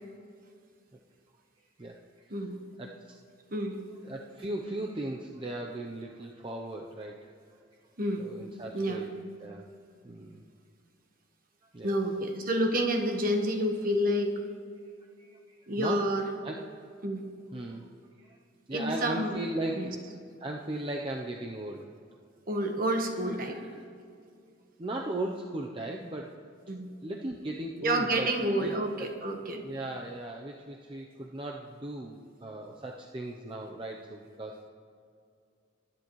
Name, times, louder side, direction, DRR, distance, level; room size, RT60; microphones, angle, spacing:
voice 1, 3.5-3.8 8.0-8.3 8.7-9.1 11.8-14.3 15.7-16.3 17.0-17.2 18.7-19.4 19.7-19.9 22.5-23.6 26.7-26.9 27.8-29.6, right 1 dB, 45° right, 4 dB, 1.3 m, -29 dB
voice 2, 4.0-7.2 8.2-9.1 9.4-9.6 10.0-10.4 11.7-11.9 15.2-16.0 16.4-16.6 17.5-17.9 18.2-18.4 18.7-20.1 20.4-21.9 23.5-23.7 24.8-26.3 27.0-28.3 28.6-29.1 29.6-34.6, right 1 dB, 25° right, 0 dB, 0.6 m, -37 dB
21.0 x 10.5 x 3.1 m, 2.3 s
head